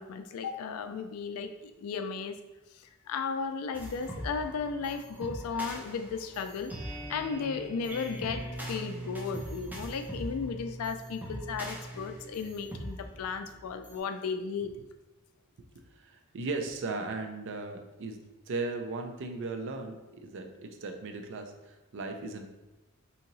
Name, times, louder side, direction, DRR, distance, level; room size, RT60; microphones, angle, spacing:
voice 1, 0.0-2.4 2.8-6.7 7.1-14.7, left 5 dB, 90° left, 8 dB, 0.4 m, -35 dB
sound 1, 3.7-14.0, right 1 dB, 10° right, 0.5 m, -41 dB
voice 2, 15.6-22.5, right 3 dB, 60° right, 5 dB, 0.5 m, -37 dB
2.8 x 2.8 x 3.9 m, 1.0 s
head